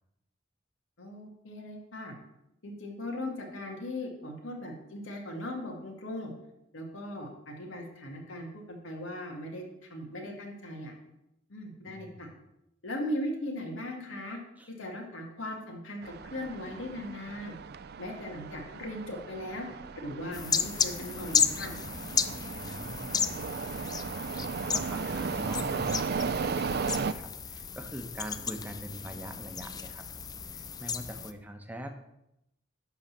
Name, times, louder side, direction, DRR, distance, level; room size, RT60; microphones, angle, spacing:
voice 1, 1.0-2.1 2.6-6.3 6.7-10.9 11.5-12.3 12.8-14.4 14.8-17.5 18.0-19.7 20.0-21.7, left 1 dB, 90° left, 1 dB, 2.2 m, -38 dB
voice 2, 11.8-12.4 14.6-14.7 22.5-32.0, equal, 10° right, 5 dB, 0.9 m, -44 dB
sound 1, 16.0-27.1, right 5 dB, 55° right, 0.4 m, -36 dB
sound 2, 20.3-31.3, left 6 dB, 20° left, 0.4 m, -33 dB
11.5 x 4.0 x 7.3 m, 0.84 s
head